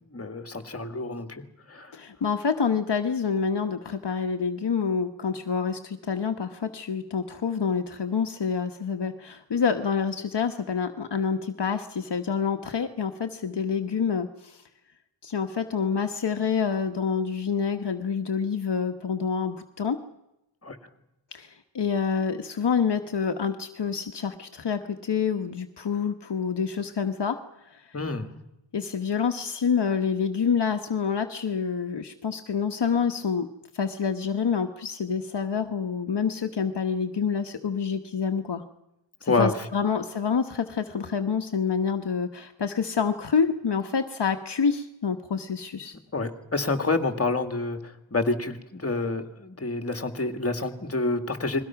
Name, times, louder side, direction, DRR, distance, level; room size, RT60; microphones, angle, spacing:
voice 1, 0.1-2.0 20.6-20.8 27.9-28.3 39.3-39.5 46.1-51.6, left 3 dB, 30° left, 7 dB, 2.2 m, -28 dB
voice 2, 1.9-14.6 15.2-20.0 21.3-27.9 28.7-33.5 33.7-38.6 39.2-45.9, left 6 dB, 60° left, 5 dB, 1.3 m, -27 dB
30.0 x 22.0 x 5.9 m, 0.89 s
wide cardioid pair, 105°, 46 cm